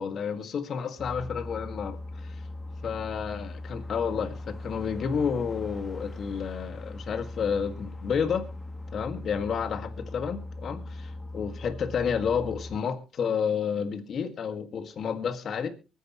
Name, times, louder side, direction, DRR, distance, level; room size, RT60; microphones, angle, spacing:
voice 1, 0.0-2.4 2.8-8.5 8.9-15.7, left 6 dB, 60° left, 8 dB, 1.8 m, -30 dB
sound 1, 1.0-12.8, left 2 dB, 20° left, 1.3 m, -40 dB
24.5 x 10.0 x 3.0 m, 0.30 s
cardioid pair, 90°, 0 cm